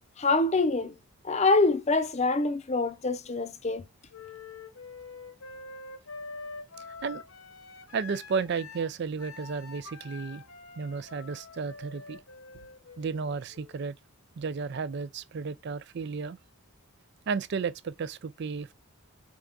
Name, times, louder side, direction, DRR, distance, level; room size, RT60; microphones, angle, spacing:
voice 1, 0.2-0.9 1.2-3.9, left 3 dB, 30° left, 0.6 m, -25 dB
Wind instrument woodwind instrument, 4.1-13.9, left 4 dB, 75° left, 1.1 m, -46 dB
voice 2, 6.8-7.2 7.9-10.4 10.8-12.2 13.0-14.0 14.4-16.4 17.3-18.7, right 5 dB, 50° right, 0.4 m, -33 dB
4.6 x 3.6 x 2.5 m
head